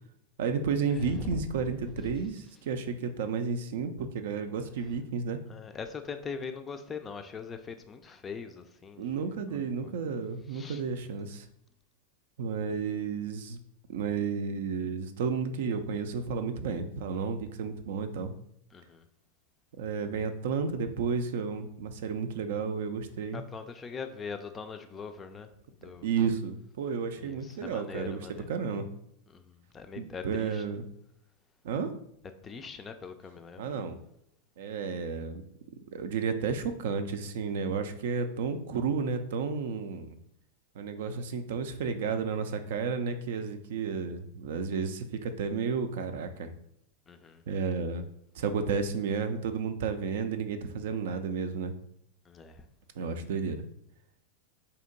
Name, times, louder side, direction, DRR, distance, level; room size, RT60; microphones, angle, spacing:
voice 1, 0.4-5.4 9.0-11.5 12.4-13.6 13.9-18.4 19.7-23.4 25.8-28.9 30.0-30.8 31.6-31.9 33.6-34.0 34.6-35.4 35.9-40.2 40.7-46.5 47.5-48.1 48.3-51.7 53.0-53.7, right 5 dB, 55° right, 9 dB, 0.4 m, -32 dB
voice 2, 1.0-1.4 5.5-9.1 9.5-9.9 10.5-10.8 18.7-19.0 23.3-25.5 25.8-26.1 27.2-28.5 29.3-30.6 32.4-33.6 47.1-47.4 52.3-52.6, left 5 dB, 20° left, 7 dB, 0.4 m, -42 dB
4.2 x 2.8 x 3.9 m, 0.73 s
figure-of-eight pair, 90°, 0 cm